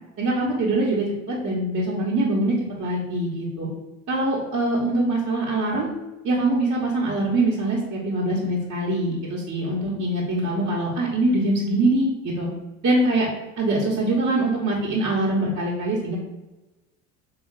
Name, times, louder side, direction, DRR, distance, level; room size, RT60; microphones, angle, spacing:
voice 1, 0.2-3.7 4.1-5.9 6.2-12.5 12.8-13.3 13.6-16.2, right 2 dB, 40° right, -5 dB, 1.1 m, -23 dB
3.5 x 2.4 x 4.5 m, 1.1 s
hypercardioid pair, 60°, 39 cm